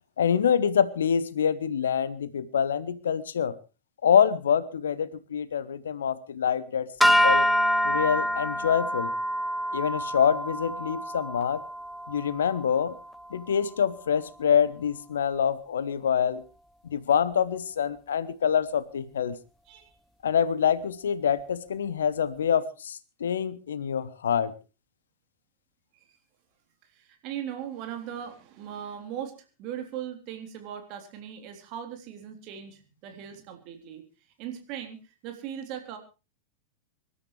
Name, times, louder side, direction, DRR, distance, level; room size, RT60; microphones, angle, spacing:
voice 1, 0.2-3.5 4.0-7.5 7.8-9.1 9.7-11.6 12.1-12.9 13.3-16.4 16.9-19.4 20.2-24.5, left 8 dB, 65° left, 18 dB, 0.9 m, -26 dB
sound 1, 7.0-13.4, equal, 5° left, 0.8 m, -26 dB
voice 2, 26.8-36.0, right 9 dB, 40° right, 5 dB, 3.4 m, -39 dB
25.5 x 12.5 x 3.2 m, 0.31 s
figure-of-eight pair, 90°, 0 cm